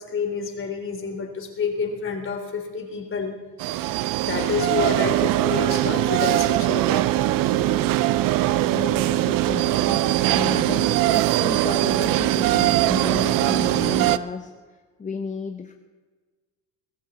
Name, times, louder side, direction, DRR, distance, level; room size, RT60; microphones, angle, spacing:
voice 1, 0.0-3.3 4.2-7.1 7.4-7.9 8.8-9.1 9.9-10.2, left 5 dB, 35° left, 3 dB, 3.4 m, -29 dB
sound 1, 3.6-14.2, right 15 dB, 75° right, 0.7 m, -21 dB
voice 2, 8.6-9.8 10.3-14.5 15.0-15.7, left 5 dB, 20° left, 4 dB, 0.9 m, -32 dB
22.0 x 14.0 x 4.3 m, 1.4 s
cardioid pair, 125°, 34 cm